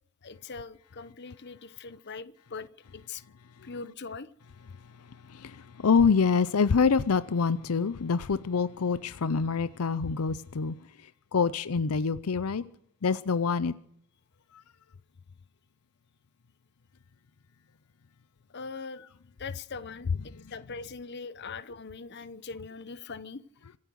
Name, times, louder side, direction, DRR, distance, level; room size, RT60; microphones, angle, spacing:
voice 1, 0.2-3.2 3.6-4.3 18.5-19.0 19.4-23.4, left 4 dB, 50° left, 0.9 m, -41 dB
voice 2, 5.3-10.8 11.3-12.6 13.0-13.7, left 5 dB, 75° left, 0.6 m, -26 dB
26.0 x 8.7 x 6.3 m
head